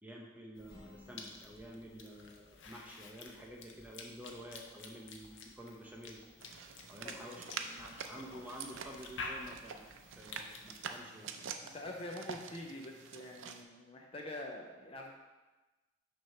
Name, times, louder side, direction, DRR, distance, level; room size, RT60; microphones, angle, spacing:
voice 1, 0.0-6.2 6.9-7.5 7.8-9.8 10.2-11.3, equal, 10° right, -1 dB, 0.7 m, -50 dB
Cough / Chewing mastication, 0.6-11.0, left 3 dB, 70° left, 0.7 m, -50 dB
Acoustic guitar, 0.7-4.6, left 1 dB, 50° left, 1.5 m, -63 dB
sound 1, 6.4-13.6, right 6 dB, 80° right, 0.4 m, -47 dB
voice 2, 7.0-8.0 8.3-8.5 11.6-15.1, left 1 dB, 30° left, 1 dB, 0.4 m, -46 dB
6.0 x 3.0 x 5.7 m, 1.2 s
head